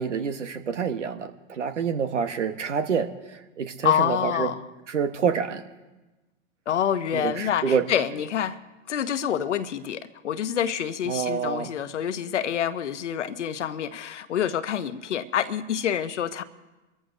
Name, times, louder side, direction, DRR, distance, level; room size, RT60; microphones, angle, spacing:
voice 1, 0.0-4.5 4.9-5.6 7.1-7.8 11.1-11.7, right 6 dB, 85° right, 9 dB, 1.2 m, -27 dB
voice 2, 3.8-4.7 6.7-8.6 8.9-16.4, left 9 dB, 80° left, 12 dB, 1.0 m, -27 dB
24.5 x 14.5 x 2.6 m, 1.1 s
hypercardioid pair, 100°, 35 cm